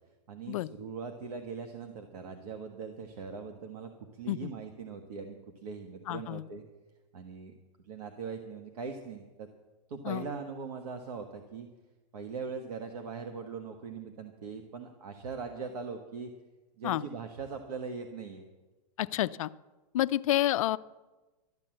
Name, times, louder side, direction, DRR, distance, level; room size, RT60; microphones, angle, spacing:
voice 1, 0.3-6.6 7.1-7.5 7.8-9.5 9.9-11.7 12.1-16.3 16.8-18.4, right 5 dB, 65° right, 5 dB, 1.4 m, -41 dB
voice 2, 6.1-6.4 10.0-10.3 16.8-17.0 19.0-19.5 19.9-20.8, left 14 dB, 55° left, 13 dB, 0.5 m, -29 dB
12.5 x 11.0 x 7.7 m, 1.2 s
hypercardioid pair, 160°, 21 cm